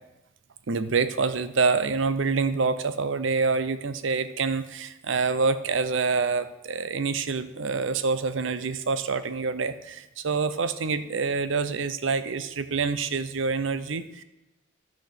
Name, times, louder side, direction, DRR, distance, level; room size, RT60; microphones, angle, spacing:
voice 1, 0.7-14.2, right 4 dB, 75° right, 12 dB, 0.6 m, -26 dB
12.5 x 4.3 x 6.4 m, 0.96 s
head